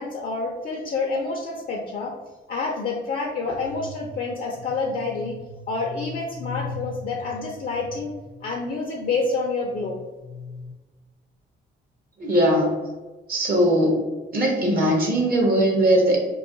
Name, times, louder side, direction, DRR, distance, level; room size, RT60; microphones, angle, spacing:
voice 1, 0.0-2.1 2.5-8.2 8.4-10.7, left 3 dB, 45° left, 0 dB, 0.4 m, -28 dB
voice 2, 12.2-12.8 13.3-14.0 14.3-16.2, right 1 dB, 45° right, -1 dB, 0.7 m, -20 dB
2.3 x 2.2 x 3.7 m, 1.2 s
cardioid pair, 90°, 20 cm